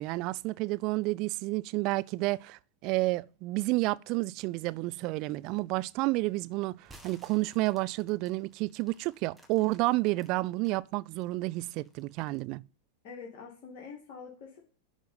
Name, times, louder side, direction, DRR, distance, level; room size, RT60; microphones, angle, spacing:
voice 1, 0.0-12.6, right 21 dB, 40° right, 0.4 m, -30 dB
sound 1, 6.8-10.8 11.2-12.5, right 1 dB, 5° right, 1.7 m, -57 dB
voice 2, 13.0-14.6, left 5 dB, 45° left, 2.4 m, -45 dB
11.0 x 4.0 x 5.1 m
figure-of-eight pair, 90°, 0 cm